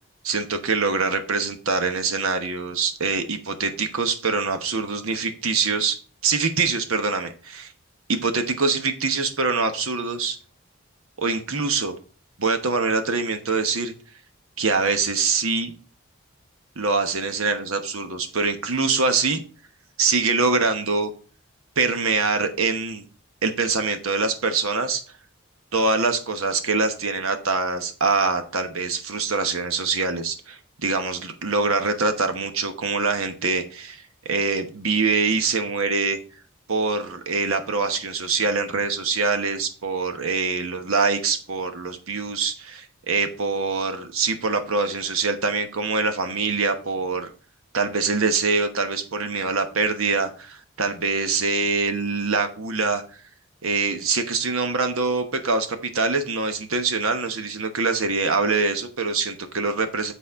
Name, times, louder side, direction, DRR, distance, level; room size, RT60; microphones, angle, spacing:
voice 1, 0.2-6.0 6.2-7.7 8.1-10.4 11.2-12.0 12.4-13.9 14.6-15.7 16.8-19.4 20.0-21.1 21.8-23.0 23.4-25.0 25.7-36.2 36.7-47.3 47.7-53.0 53.6-60.1, right 4 dB, 85° right, 7 dB, 1.1 m, -24 dB
8.3 x 4.1 x 5.0 m, 0.38 s
head